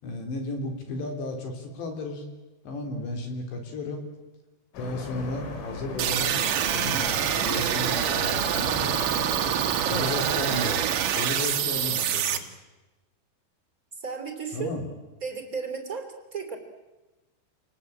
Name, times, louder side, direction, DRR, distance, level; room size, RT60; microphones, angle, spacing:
voice 1, 0.0-2.3 2.7-4.0 4.8-6.3 6.6-7.1 7.4-9.0 9.9-10.9 11.1-12.5 14.5-14.9, left 2 dB, 60° left, 4 dB, 5.6 m, -33 dB
sound 1, 4.7-9.8, left 3 dB, 85° left, 6.2 m, -38 dB
sound 2, 6.0-12.4, right 9 dB, 65° right, 2.1 m, -26 dB
voice 2, 9.8-10.3 14.0-14.7 15.2-16.6, right 5 dB, 20° right, 5 dB, 2.7 m, -34 dB
28.5 x 19.5 x 8.8 m, 1.1 s
omnidirectional pair, 5.9 m